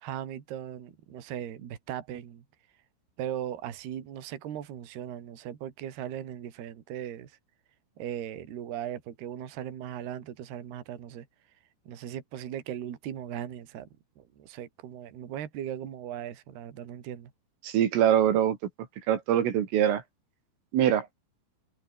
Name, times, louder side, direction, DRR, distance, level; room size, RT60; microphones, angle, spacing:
voice 1, 0.0-2.4 3.2-7.3 8.0-11.3 11.9-13.9 14.2-17.3, right 10 dB, 55° right, 4.3 m, -38 dB
voice 2, 17.6-18.6 19.1-20.0 20.7-21.1, right 10 dB, 75° right, 5.0 m, -23 dB
omnidirectional pair, 6.0 m